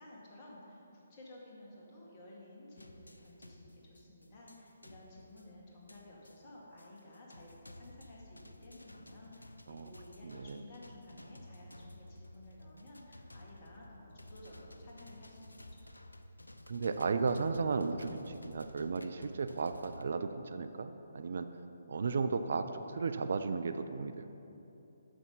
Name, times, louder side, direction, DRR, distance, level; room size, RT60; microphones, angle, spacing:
voice 1, 0.0-15.9, left 1 dB, 35° left, -4 dB, 1.8 m, -54 dB
sound 1, 2.8-20.0, left 1 dB, 85° left, 0.4 m, -54 dB
voice 2, 10.2-10.6 16.7-21.5 21.9-24.3, right 4 dB, 55° right, 9 dB, 0.4 m, -34 dB
7.1 x 5.9 x 5.5 m, 3.0 s
figure-of-eight pair, 135°, 0 cm